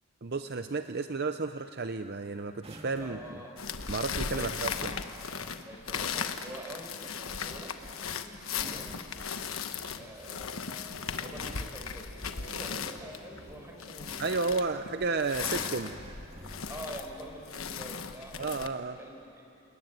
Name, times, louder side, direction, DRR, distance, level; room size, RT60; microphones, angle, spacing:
voice 1, 0.2-3.4 3.9-4.9 14.2-16.0 18.4-19.0, right 3 dB, 45° right, 8 dB, 0.6 m, -32 dB
sound 1, 2.5-3.5 5.6-6.2 8.4-9.7 10.8-11.0 11.4-11.9 13.6-13.8 14.1-14.4 15.3-17.0 17.9-18.2, right 1 dB, 25° right, 2.0 m, -49 dB
voice 2, 3.0-3.5 4.3-4.8 5.6-8.3 8.7-8.9 10.0-10.6 11.2-14.2 16.7-19.4, right 1 dB, 10° right, 0 dB, 4.5 m, -46 dB
sound 2, 3.6-18.7, left 6 dB, 75° left, 1.2 m, -37 dB
sound 3, 8.5-15.0, equal, 75° right, 3.9 m, -54 dB
29.0 x 20.0 x 9.1 m, 2.7 s
head